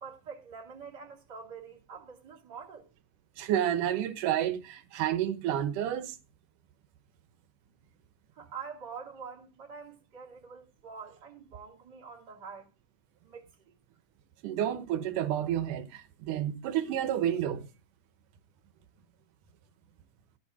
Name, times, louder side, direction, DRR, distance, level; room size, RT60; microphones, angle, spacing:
voice 1, 0.0-2.9 8.3-12.7 13.2-13.7, right 6 dB, 35° right, 2.7 m, -46 dB
voice 2, 3.4-6.2 14.4-17.7, right 11 dB, 75° right, 2.5 m, -30 dB
13.5 x 6.6 x 4.8 m
omnidirectional pair, 3.8 m